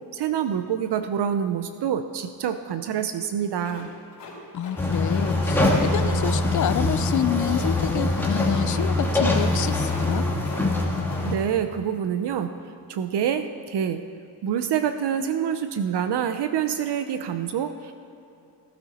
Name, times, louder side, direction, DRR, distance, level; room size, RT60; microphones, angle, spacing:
voice 1, 0.1-3.9 11.2-12.5 12.9-14.0 14.4-17.9, right 8 dB, 70° right, 9 dB, 0.8 m, -26 dB
sound 1, 3.6-4.8 5.1-5.3 5.7-6.0 7.5-7.8 8.1-8.3 8.6-8.9 9.2-9.5 9.7-10.6 10.9-11.3, left 5 dB, 85° left, 3.2 m, -43 dB
voice 2, 4.5-10.2, left 10 dB, 45° left, 13 dB, 0.5 m, -28 dB
sound 2, 4.8-11.4, left 2 dB, 5° left, 1.9 m, -23 dB
15.5 x 15.0 x 4.3 m, 2.8 s
cardioid pair, 105°, 42 cm